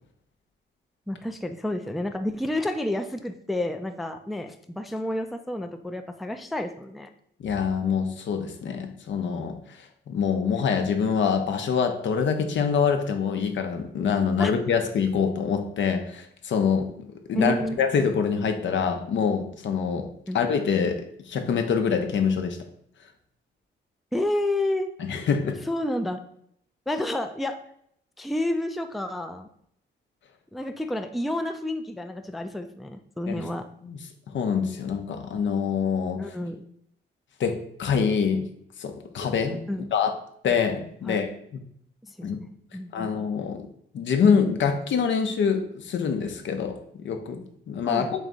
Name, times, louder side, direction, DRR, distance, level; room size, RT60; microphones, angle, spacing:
voice 1, 1.1-7.1 14.4-14.5 17.3-17.8 20.3-20.4 24.1-24.9 25.6-26.2 26.9-27.6 28.2-29.5 30.5-33.7 36.2-36.7 39.7-39.9 41.1-41.2 42.1-43.1 47.8-48.1, left 1 dB, ahead, 7 dB, 0.3 m, -30 dB
voice 2, 7.4-9.6 10.1-16.9 17.3-20.1 20.3-22.6 25.0-25.6 33.3-33.4 33.8-34.0 34.3-36.2 37.4-38.5 38.8-39.6 39.9-40.1 40.4-41.3 42.2-42.4 42.9-43.7 43.9-48.1, left 6 dB, 65° left, 6 dB, 0.6 m, -25 dB
3.5 x 3.2 x 3.8 m, 0.69 s
cardioid pair, 65°, 20 cm